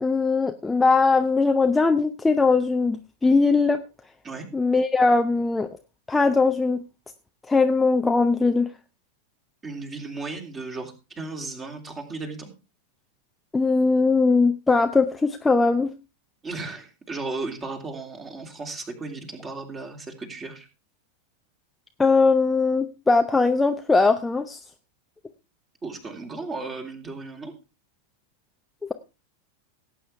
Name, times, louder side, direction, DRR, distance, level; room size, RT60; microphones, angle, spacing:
voice 1, 0.0-3.8 4.5-5.7 6.1-6.8 7.5-8.7 13.5-15.9 22.0-24.6 28.8-28.9, left 3 dB, 10° left, 6 dB, 0.7 m, -20 dB
voice 2, 9.6-12.5 16.4-20.7 25.8-27.5, right 3 dB, 20° right, 4 dB, 3.1 m, -35 dB
18.0 x 8.6 x 3.4 m, 0.29 s
figure-of-eight pair, 90°, 0 cm